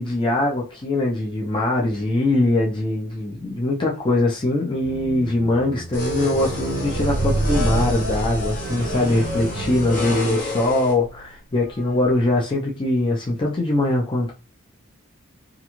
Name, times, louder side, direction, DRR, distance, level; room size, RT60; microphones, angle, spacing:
voice 1, 0.0-14.3, left 2 dB, 20° left, -2 dB, 0.4 m, -22 dB
Squeak, 4.8-11.2 11.9-12.1, right 2 dB, 50° right, 0.6 m, -28 dB
sound 1, 5.9-10.9, left 2 dB, 40° left, 0.9 m, -29 dB
2.4 x 2.2 x 2.9 m, 0.33 s
head